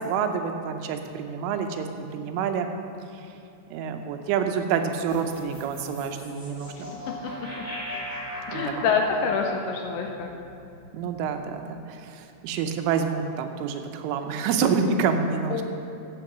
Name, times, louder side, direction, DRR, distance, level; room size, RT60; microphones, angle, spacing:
voice 1, 0.0-2.7 3.7-6.9 8.5-8.7 10.9-15.6, right 6 dB, 85° right, 6 dB, 3.3 m, -27 dB
sound 1, 5.1-11.4, left 1 dB, 10° left, 1.1 m, -38 dB
voice 2, 8.5-10.3 15.5-15.6, left 5 dB, 80° left, 2 dB, 2.8 m, -26 dB
14.5 x 5.8 x 6.7 m, 2.6 s
omnidirectional pair, 5.6 m